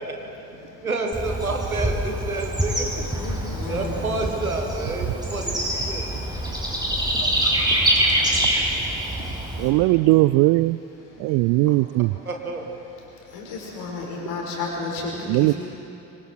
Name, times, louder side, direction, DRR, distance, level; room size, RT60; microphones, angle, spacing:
voice 1, 0.0-0.5 0.8-3.1 3.7-6.1 6.4-6.8 7.1-8.3 11.7-11.8 12.2-12.7, right 2 dB, 90° right, 3 dB, 1.5 m, -30 dB
Bird / Insect, 1.1-9.7, right 1 dB, 10° right, 6.1 m, -25 dB
voice 2, 3.1-4.1 6.1-9.4 11.1-11.4 13.1-15.5, left 3 dB, 65° left, -2 dB, 5.2 m, -35 dB
voice 3, 9.6-10.8 11.2-12.1 15.3-15.5, right 20 dB, 55° right, 17 dB, 0.5 m, -19 dB
26.0 x 25.0 x 4.7 m, 2.9 s
figure-of-eight pair, 45°, 41 cm